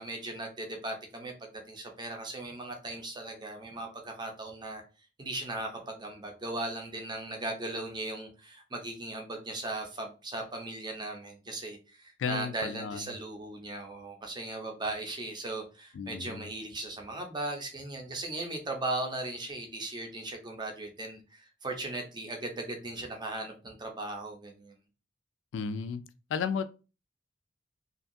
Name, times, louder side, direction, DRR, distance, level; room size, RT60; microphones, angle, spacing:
voice 1, 0.0-4.8 5.2-24.8, right 2 dB, 25° right, 0.6 m, -38 dB
voice 2, 12.2-13.0 16.0-16.4 25.5-26.0 26.3-26.7, left 6 dB, 85° left, 0.3 m, -33 dB
2.6 x 2.3 x 2.5 m
head